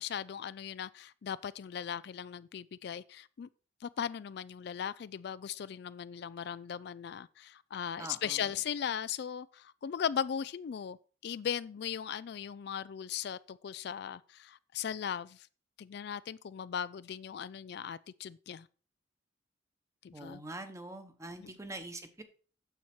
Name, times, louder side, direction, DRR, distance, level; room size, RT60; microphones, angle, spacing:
voice 1, 0.0-3.5 3.8-11.0 11.2-15.5 15.8-18.7 20.0-20.4 21.4-21.5, left 8 dB, 60° left, 0.3 m, -38 dB
voice 2, 8.0-8.5 20.1-22.2, right 2 dB, 15° right, 1.0 m, -44 dB
9.3 x 7.2 x 4.4 m
head